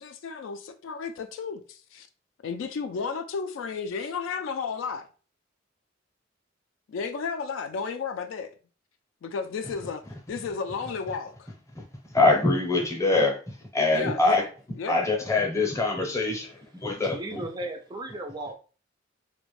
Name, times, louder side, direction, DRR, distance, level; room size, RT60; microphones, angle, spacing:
voice 1, 0.0-2.1 2.4-5.1 6.9-8.5 9.2-10.0 10.3-11.5 13.9-14.5 14.8-15.0, left 5 dB, 75° left, 0.3 m, -33 dB
voice 2, 12.1-13.3 13.7-14.5 14.9-17.4, left 2 dB, 15° left, 0.6 m, -23 dB
voice 3, 16.9-18.5, right 1 dB, 20° right, 0.3 m, -36 dB
2.4 x 2.1 x 3.0 m
head